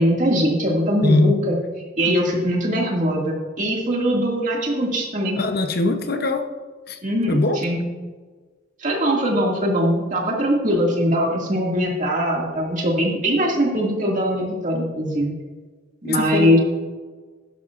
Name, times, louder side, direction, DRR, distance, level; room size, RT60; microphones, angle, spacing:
voice 1, 0.0-1.6 2.0-5.4 7.0-7.8 8.8-15.3 16.0-16.6, equal, 40° right, -1 dB, 2.2 m, -21 dB
voice 2, 1.0-1.4 2.0-2.2 5.4-6.5 6.9-7.0 7.3-7.6 16.0-16.6, left 2 dB, 50° left, 6 dB, 0.8 m, -21 dB
11.5 x 11.0 x 2.5 m, 1.4 s
head